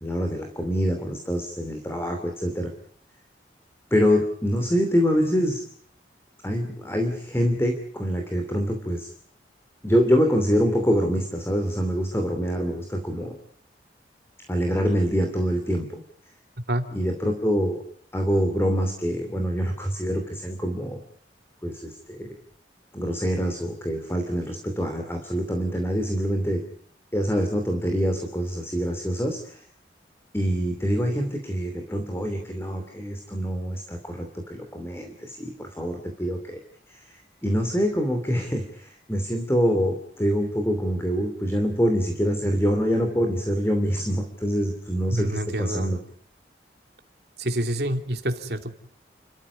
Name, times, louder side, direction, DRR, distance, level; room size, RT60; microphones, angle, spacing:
voice 1, 0.0-2.7 3.9-5.7 6.4-9.1 9.8-13.3 14.5-16.0 16.9-17.8 18.1-21.0 21.6-22.3 22.9-26.6 27.1-29.6 30.3-36.6 36.9-37.0 37.4-46.0, equal, 15° left, 5 dB, 2.7 m, -25 dB
voice 2, 45.1-46.0 47.4-48.8, right 1 dB, 65° right, 6 dB, 2.8 m, -27 dB
30.0 x 14.0 x 9.7 m, 0.63 s
head